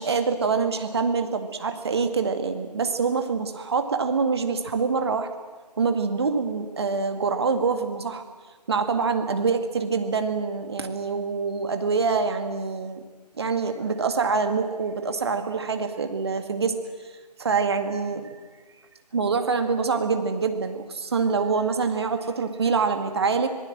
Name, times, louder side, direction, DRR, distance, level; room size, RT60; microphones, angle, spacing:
voice 1, 0.0-5.3 5.8-8.2 8.7-13.0 13.3-16.8 17.4-18.4 19.1-23.5, right 5 dB, 40° right, 7 dB, 2.0 m, -25 dB
26.0 x 19.0 x 7.7 m, 1.4 s
figure-of-eight pair, 150°, 21 cm